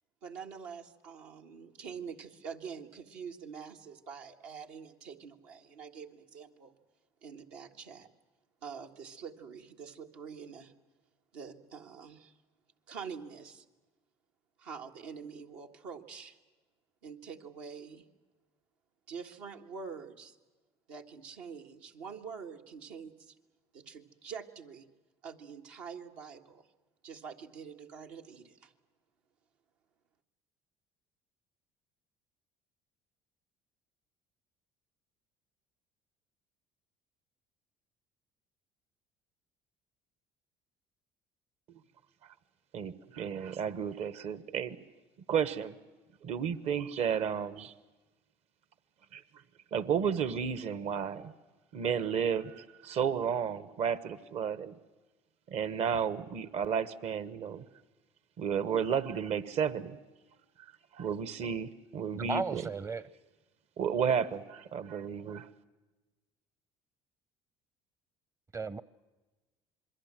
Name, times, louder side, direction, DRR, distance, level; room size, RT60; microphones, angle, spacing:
voice 1, 0.2-6.8 7.2-8.1 8.6-10.7 11.3-12.4 12.9-13.6 14.6-16.4 17.0-18.1 19.1-20.4 20.9-23.3 23.7-24.9 25.2-26.7 27.0-28.7, right 6 dB, 85° right, 2 dB, 1.8 m, -45 dB
voice 2, 42.7-44.8 45.3-45.7 46.2-47.7 49.1-49.2 49.7-51.3 51.7-54.7 55.5-57.6 58.4-60.0 60.9-62.6 63.8-65.5, right 7 dB, 60° right, 15 dB, 1.3 m, -32 dB
voice 3, 62.1-63.0 68.5-68.8, right 4 dB, 25° right, 17 dB, 0.7 m, -34 dB
27.5 x 22.0 x 7.6 m, 1.2 s
supercardioid pair, 80°, 12 cm